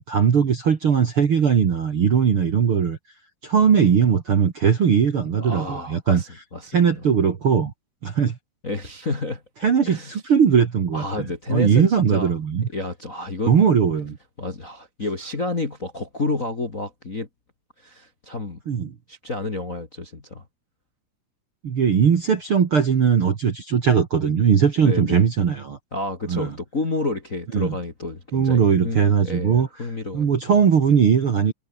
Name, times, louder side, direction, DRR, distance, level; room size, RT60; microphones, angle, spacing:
voice 1, 0.0-3.0 3.4-6.2 6.7-7.7 8.0-8.4 9.6-12.7 13.4-14.2 18.7-18.9 21.6-25.8 26.3-26.5 27.5-27.8 28.3-29.9 30.1-31.5, right 7 dB, 45° right, 2.0 m, -19 dB
voice 2, 5.4-6.9 8.6-9.4 9.9-10.2 10.9-12.3 12.7-13.5 14.4-17.3 17.8-18.6 19.1-20.4 24.8-25.3 25.9-30.6, left 2 dB, 25° left, 1.8 m, -30 dB
omnidirectional pair, 4.7 m